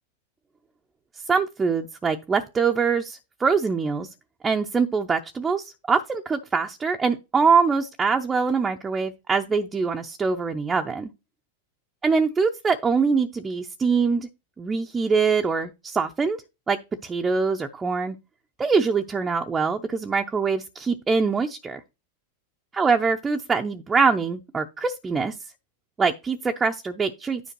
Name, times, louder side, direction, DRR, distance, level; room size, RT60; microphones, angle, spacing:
voice 1, 1.3-4.1 4.4-11.1 12.0-14.3 14.6-16.4 16.7-18.2 18.6-21.8 22.8-25.3 26.0-27.4, right 5 dB, 15° right, 0.6 m, -23 dB
9.9 x 5.0 x 3.1 m
figure-of-eight pair, 90°, 0 cm